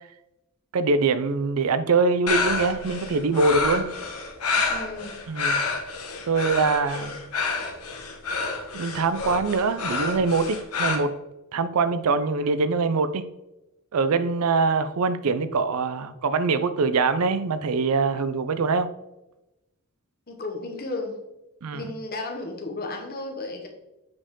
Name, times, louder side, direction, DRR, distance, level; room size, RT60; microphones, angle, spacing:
voice 1, 0.7-3.8 5.3-5.6 6.3-7.2 8.7-11.1 11.5-13.2 13.9-18.9 21.6-21.9, right 4 dB, 80° right, 0.5 m, -23 dB
sound 1, 2.3-11.0, left 4 dB, 80° left, 1.1 m, -28 dB
voice 2, 4.7-5.2 20.3-21.2 21.7-23.7, left 2 dB, 45° left, 1.2 m, -33 dB
7.6 x 4.4 x 3.7 m
head